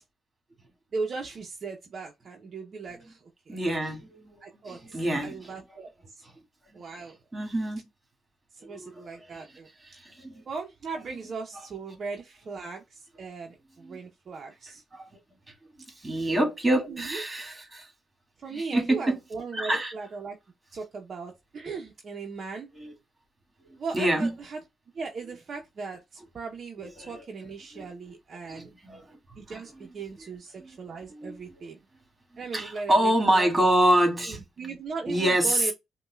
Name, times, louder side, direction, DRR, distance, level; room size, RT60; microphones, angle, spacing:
voice 1, 0.9-3.6 4.4-6.2 6.7-7.2 8.5-9.7 10.5-14.8 16.6-17.2 18.4-20.4 20.7-22.7 23.8-24.6 24.9-28.7 29.4-31.8 32.4-33.5 34.2-35.7, right 4 dB, 50° right, 0.8 m, -38 dB
voice 2, 3.5-5.5 7.3-7.8 8.6-9.4 9.8-10.4 13.8-14.0 14.9-15.1 16.0-17.9 18.5-19.2 19.5-19.9 22.8-22.9 23.6-24.3 27.0-27.2 27.7-27.9 28.5-29.2 30.6-30.7 31.1-31.4 32.5-34.4 35.1-35.7, right 1 dB, 15° right, 2.2 m, -26 dB
5.3 x 2.3 x 2.3 m
cardioid pair, 90°, 0 cm